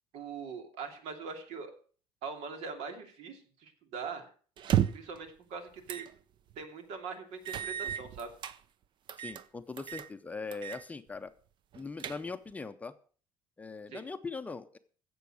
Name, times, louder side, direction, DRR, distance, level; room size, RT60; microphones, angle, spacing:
voice 1, 0.1-1.7 2.2-4.3 4.9-6.1 6.6-8.3 13.9-14.0, right 5 dB, 75° right, 6 dB, 2.7 m, -42 dB
sound 1, 4.6-5.2 5.9-6.1 6.5-6.6 7.5-8.6 9.1-9.4 9.8-10.1 10.5-10.8 11.1-11.2 11.7-12.5, right 10 dB, 45° right, 0.6 m, -33 dB
voice 2, 9.2-11.3 11.7-12.9 13.6-14.8, left 4 dB, 15° left, 9 dB, 0.6 m, -41 dB
15.5 x 7.0 x 6.3 m, 0.43 s
cardioid pair, 165°, 11 cm